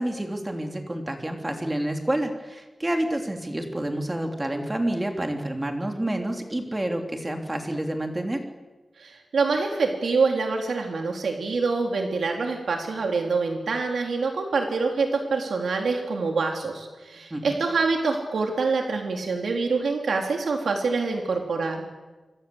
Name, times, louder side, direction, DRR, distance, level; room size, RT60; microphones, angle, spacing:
voice 1, 0.0-8.4 17.3-17.6, right 1 dB, 15° right, 4 dB, 3.4 m, -28 dB
voice 2, 9.0-21.8, right 4 dB, 85° right, 2 dB, 3.6 m, -26 dB
26.5 x 25.0 x 8.0 m, 1.2 s
wide cardioid pair, 150°, 0 cm